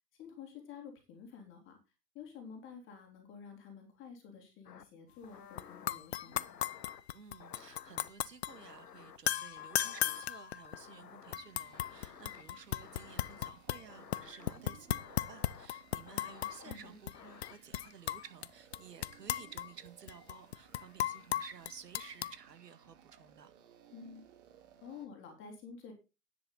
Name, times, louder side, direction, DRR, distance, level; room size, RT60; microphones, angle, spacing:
voice 1, 0.1-1.8 2.1-6.5 16.6-17.0 23.9-24.3 24.8-25.9, left 6 dB, 25° left, 3.4 m, -50 dB
sound 1, 4.6-4.9 5.2-5.9 6.3-7.0 7.4-8.1 8.5-9.2 9.6-10.3 10.6-11.3 11.7-12.4 12.8-13.5 13.9-14.6 15.0-15.7 16.1-16.8 17.1-17.6, left 8 dB, 70° left, 1.4 m, -54 dB
sound 2, 5.6-5.7 5.9-8.5 9.3-10.9 11.3-13.8 14.1-16.8 17.1-17.2 17.4-18.5 18.7-22.3, left 12 dB, 45° left, 0.5 m, -36 dB
voice 2, 7.1-23.5, right 7 dB, 75° right, 1.9 m, -54 dB
sound 3, 11.3-25.1, right 9 dB, 45° right, 2.9 m, -61 dB
10.5 x 9.9 x 4.0 m
figure-of-eight pair, 120°, 49 cm